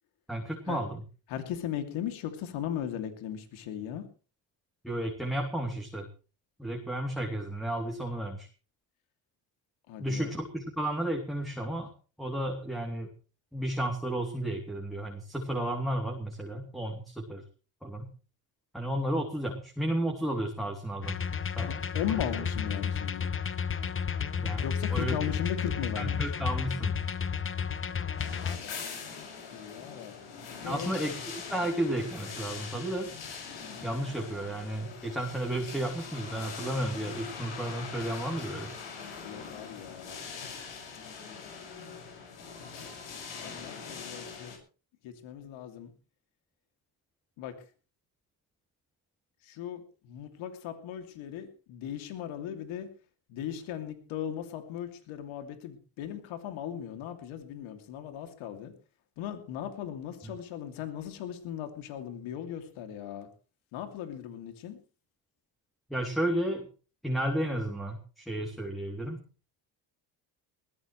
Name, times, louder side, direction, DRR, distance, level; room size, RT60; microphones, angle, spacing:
voice 1, 0.3-1.0 4.8-6.1 6.6-8.5 10.0-11.9 12.2-13.1 13.5-17.4 17.8-18.1 18.7-21.2 21.6-21.8 22.1-22.2 24.4-24.6 24.9-25.2 26.0-26.9 30.6-33.1 33.8-38.7 60.2-60.3 65.9-66.7 67.0-69.2, right 1 dB, ahead, 0 dB, 3.2 m, -32 dB
voice 2, 1.3-4.0 9.9-10.3 21.6-23.3 24.6-26.2 28.4-30.1 30.6-31.0 39.2-40.2 43.4-44.5 45.0-45.9 47.4-47.5 49.4-52.9 53.3-58.7 59.2-63.3 63.7-64.8, left 10 dB, 85° left, 7 dB, 2.9 m, -38 dB
sound 1, 21.0-28.6, left 7 dB, 25° left, 1.0 m, -32 dB
sound 2, 28.2-44.6, left 5 dB, 70° left, 6.9 m, -42 dB
20.0 x 16.0 x 3.3 m, 0.36 s
cardioid pair, 90°, 46 cm